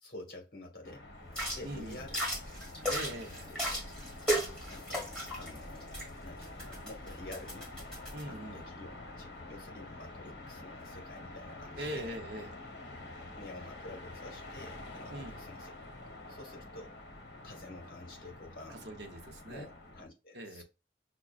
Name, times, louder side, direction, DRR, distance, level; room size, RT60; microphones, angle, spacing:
voice 1, 0.0-1.1 1.5-2.7 3.4-3.6 4.7-7.7 8.2-12.1 13.4-15.7 16.3-17.0 17.4-18.9 19.5-20.6, left 2 dB, 50° left, 1.4 m, -49 dB
sound 1, 0.8-20.0, left 2 dB, 70° left, 1.0 m, -48 dB
sound 2, 1.3-8.2, equal, 5° left, 1.6 m, -37 dB
voice 2, 1.6-2.1 2.9-3.5 8.1-8.7 11.8-12.5 15.1-15.4 18.7-19.7 20.3-20.6, right 1 dB, 65° right, 0.8 m, -41 dB
6.0 x 2.2 x 2.4 m
head